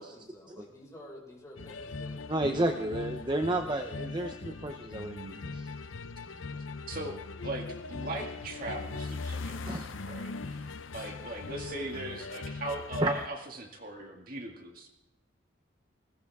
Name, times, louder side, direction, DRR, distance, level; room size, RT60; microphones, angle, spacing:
voice 1, 0.0-2.7 11.2-11.3, left 1 dB, 15° left, -3 dB, 5.7 m, -50 dB
sound 1, 1.6-13.3, left 3 dB, 85° left, 0.7 m, -40 dB
voice 2, 2.3-5.7 9.6-9.9 13.0-13.1, right 1 dB, 25° right, 5 dB, 0.8 m, -31 dB
voice 3, 6.9-14.9, right 1 dB, 45° right, 2 dB, 2.2 m, -39 dB
20.0 x 18.0 x 3.6 m, 0.97 s
head